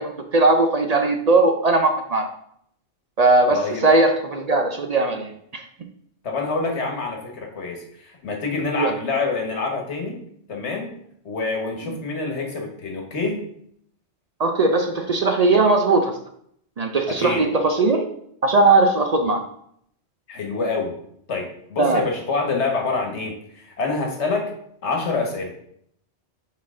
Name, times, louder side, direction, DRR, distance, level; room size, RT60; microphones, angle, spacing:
voice 1, 0.0-2.3 3.2-5.6 8.8-8.9 11.9-12.0 14.4-16.2 16.8-18.1 18.4-19.4 21.8-22.0, right 3 dB, 50° right, 5 dB, 0.5 m, -19 dB
voice 2, 3.5-3.9 6.2-10.2 10.5-10.9 11.2-13.4 17.1-17.5 20.3-20.9 21.3-24.5 24.8-25.5, left 3 dB, 75° left, 1 dB, 1.5 m, -26 dB
6.3 x 4.2 x 3.6 m, 0.68 s
omnidirectional pair, 1.2 m